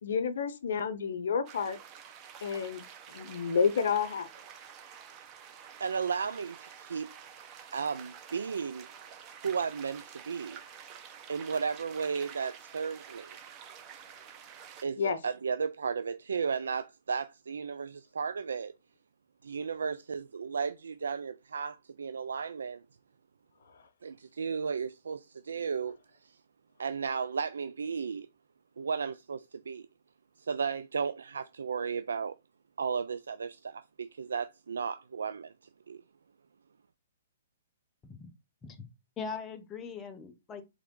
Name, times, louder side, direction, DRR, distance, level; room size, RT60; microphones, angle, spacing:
voice 1, 0.0-1.8 2.4-2.8 3.1-4.3 15.0-15.2, left 6 dB, 70° left, 0.7 m, -29 dB
sound 1, 1.5-14.8, right 8 dB, 30° right, 0.9 m, -49 dB
voice 2, 5.8-7.1 7.7-8.9 9.4-10.6 11.3-13.4 14.8-18.7 19.4-22.8 24.0-26.0 26.2-26.4 26.8-28.3 28.8-29.9 30.4-32.4 32.8-35.5 35.9-36.0, right 6 dB, 80° right, 0.3 m, -34 dB
voice 3, 39.2-40.6, left 5 dB, 20° left, 0.8 m, -41 dB
3.5 x 3.3 x 3.7 m
hypercardioid pair, 140°, 0 cm